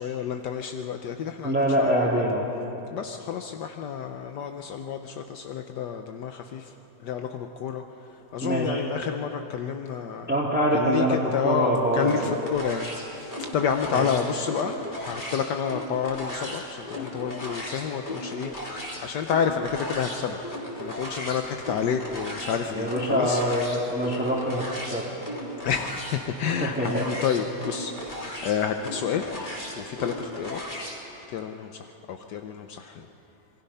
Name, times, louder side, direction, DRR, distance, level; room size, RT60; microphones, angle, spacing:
voice 1, 0.0-2.1 2.9-6.7 7.0-7.8 8.3-10.3 10.7-14.7 15.0-20.4 20.8-23.4 25.6-29.3 29.8-30.6 31.3-33.1, left 7 dB, 75° left, 5 dB, 1.4 m, -30 dB
voice 2, 1.4-2.5 8.4-8.8 10.3-12.4 13.9-14.1 22.7-24.6 24.9-25.1 26.6-27.1, right 1 dB, 5° right, -4 dB, 2.3 m, -24 dB
sound 1, 12.0-31.0, equal, 25° left, 3.3 m, -36 dB
27.0 x 22.5 x 5.6 m, 2.9 s
omnidirectional pair, 1.9 m